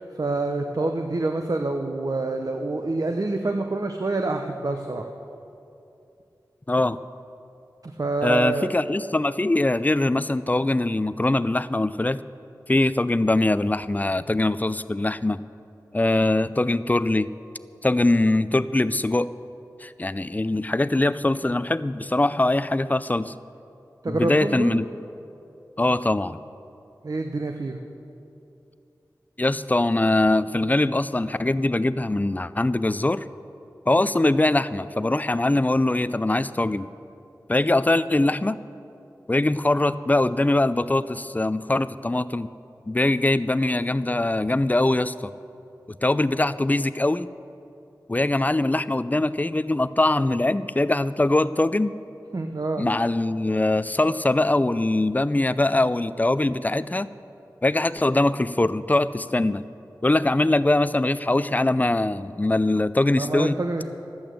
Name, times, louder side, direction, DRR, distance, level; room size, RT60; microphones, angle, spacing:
voice 1, 0.0-5.1 7.8-8.7 24.0-24.8 27.0-27.9 52.3-52.9 63.2-64.0, right 2 dB, 55° right, 4 dB, 0.8 m, -27 dB
voice 2, 6.7-7.0 8.2-12.2 12.7-15.4 15.9-17.3 17.8-19.3 19.8-23.3 24.1-24.9 25.8-26.4 29.4-33.2 33.9-36.9 37.5-38.6 39.3-42.5 42.9-45.3 46.0-47.3 48.1-51.9 52.8-57.1 57.6-59.6 60.0-63.6, left 2 dB, 20° left, 14 dB, 0.4 m, -22 dB
12.0 x 8.7 x 7.6 m, 2.7 s
wide cardioid pair, 45°, 7 cm